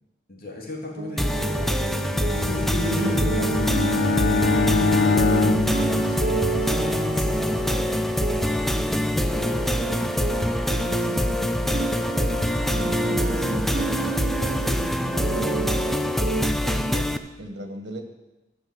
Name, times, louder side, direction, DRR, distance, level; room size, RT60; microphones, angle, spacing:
voice 1, 0.3-1.7 2.3-3.3 3.9-4.2 4.5-7.8 8.5-8.8 9.1-10.5, left 2 dB, 55° left, -2 dB, 3.0 m, -38 dB
sound 1, 1.0-16.5, right 3 dB, 50° right, 0.9 m, -30 dB
sound 2, 1.2-17.2, equal, ahead, 0.5 m, -25 dB
Bowed string instrument, 2.1-6.8, left 5 dB, 85° left, 0.5 m, -24 dB
voice 2, 2.8-3.7 5.7-5.9 7.1-7.8 9.9-10.0 10.9-11.8 12.7-16.0 16.6-17.1 17.4-18.0, equal, 85° right, 5 dB, 1.7 m, -35 dB
12.5 x 6.4 x 8.0 m, 1.0 s
head